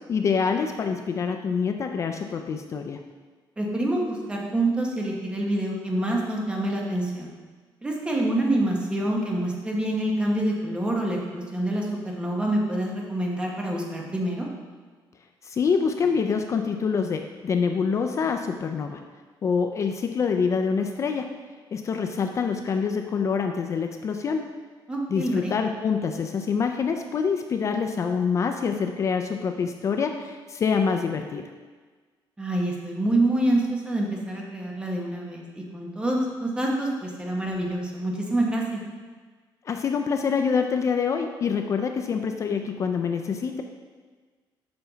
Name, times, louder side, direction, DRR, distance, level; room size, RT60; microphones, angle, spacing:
voice 1, 0.0-3.0 15.4-19.0 19.4-21.3 21.7-24.5 25.1-31.4 39.7-43.6, left 5 dB, 35° left, 5 dB, 0.4 m, -26 dB
voice 2, 3.6-7.3 7.8-14.5 24.9-25.5 32.4-38.8, right 1 dB, 10° right, -1 dB, 1.0 m, -26 dB
6.9 x 5.5 x 4.0 m, 1.4 s
cardioid pair, 160°, 8 cm